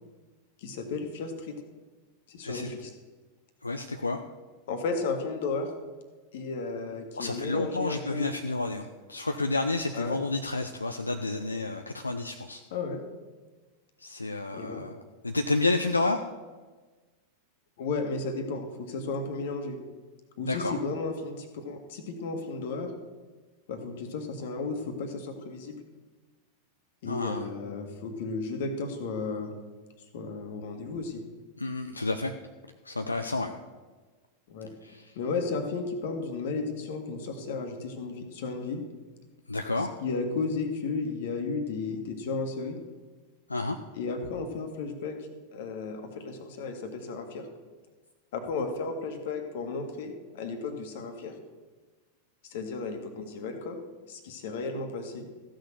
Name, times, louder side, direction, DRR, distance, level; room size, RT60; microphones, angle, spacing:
voice 1, 0.6-1.6 2.3-2.9 4.7-5.7 6.3-8.3 9.9-10.2 12.7-13.0 14.5-14.8 17.8-19.8 20.4-22.9 23.7-25.8 27.0-29.5 30.1-31.2 34.5-34.7 35.2-38.8 40.0-42.8 43.9-45.1 45.5-47.5 48.3-51.4 52.5-53.8 54.1-55.3, left 4 dB, 55° left, 5 dB, 1.8 m, -34 dB
voice 2, 3.6-4.2 7.1-12.6 14.0-14.9 15.2-16.2 20.4-20.8 27.1-27.4 31.6-32.3 32.9-33.5 34.8-35.1 39.5-39.9 43.5-43.8, left 2 dB, 80° left, 6 dB, 0.5 m, -30 dB
14.5 x 6.5 x 6.9 m, 1.3 s
figure-of-eight pair, 90°, 0 cm